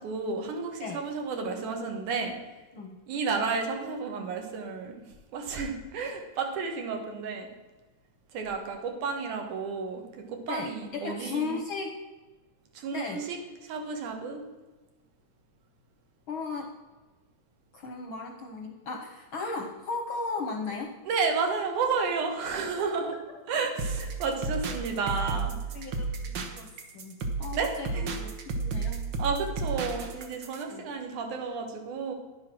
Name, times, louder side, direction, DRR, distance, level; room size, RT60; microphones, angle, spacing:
voice 1, 0.0-2.3 3.1-5.0 5.3-7.5 8.3-11.5 12.7-13.4 13.6-14.4 21.1-23.2 23.5-25.6 27.5-28.1 29.2-32.1, right 4 dB, 90° right, 3 dB, 2.9 m, -32 dB
voice 2, 10.5-11.9 12.9-13.2 16.3-16.7 17.7-20.9 22.8-22.9 25.7-29.0 30.7-30.9, left 4 dB, 65° left, 3 dB, 1.3 m, -36 dB
sound 1, 23.8-30.6, right 4 dB, 65° right, 1.1 m, -33 dB
10.5 x 7.5 x 6.1 m, 1.2 s
omnidirectional pair, 3.4 m